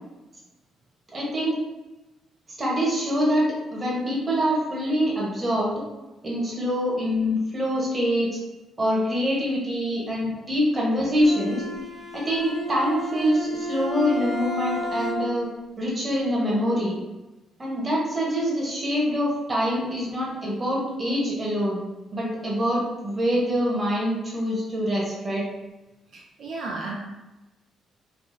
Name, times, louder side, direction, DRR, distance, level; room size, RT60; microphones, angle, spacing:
voice 1, 1.1-1.6 2.6-5.8 6.2-8.3 8.8-11.6 12.1-15.5 15.8-17.0 17.6-21.8 22.1-25.5, equal, 30° right, -4 dB, 1.1 m, -25 dB
Bowed string instrument, 11.2-15.5, equal, 5° right, 0.7 m, -32 dB
voice 2, 26.1-27.0, right 3 dB, 65° right, -2 dB, 0.4 m, -33 dB
3.3 x 2.3 x 2.6 m, 1.1 s
cardioid pair, 90°, 0 cm